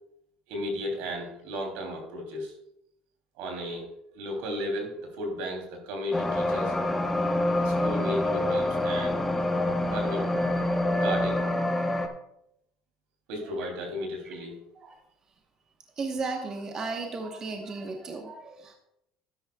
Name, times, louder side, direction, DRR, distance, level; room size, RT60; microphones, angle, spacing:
voice 1, 0.5-2.5 3.4-3.9 4.1-6.8 7.6-9.2 9.9-10.3 10.9-11.4 13.3-14.6, equal, 80° right, 2 dB, 2.9 m, -34 dB
sound 1, 6.1-12.1, left 1 dB, 10° left, 0.9 m, -26 dB
voice 2, 16.0-18.7, right 3 dB, 30° right, 3 dB, 1.1 m, -34 dB
12.5 x 10.5 x 2.3 m, 0.78 s
cardioid pair, 130°, 2 cm